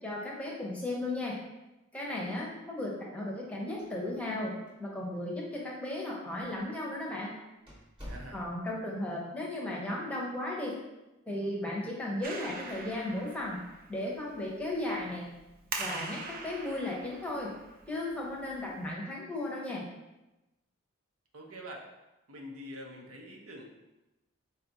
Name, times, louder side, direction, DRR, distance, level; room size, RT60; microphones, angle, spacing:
voice 1, 0.0-1.3 1.9-4.5 4.8-7.3 8.3-10.7 11.3-13.6 13.9-15.3 15.8-17.5 17.9-19.8, left 1 dB, 5° left, -3 dB, 0.7 m, -35 dB
sound 1, 3.8-4.4 4.7-4.8 5.5-5.6 6.4-6.6 7.0-7.1 7.7-8.8, equal, 25° right, 1.0 m, -47 dB
voice 2, 8.1-8.5 21.3-21.9 22.3-23.7, equal, 85° right, 0 dB, 0.7 m, -45 dB
Clapping, 12.2-18.9, right 3 dB, 45° right, 0.4 m, -43 dB
4.1 x 2.4 x 3.9 m, 1.0 s
head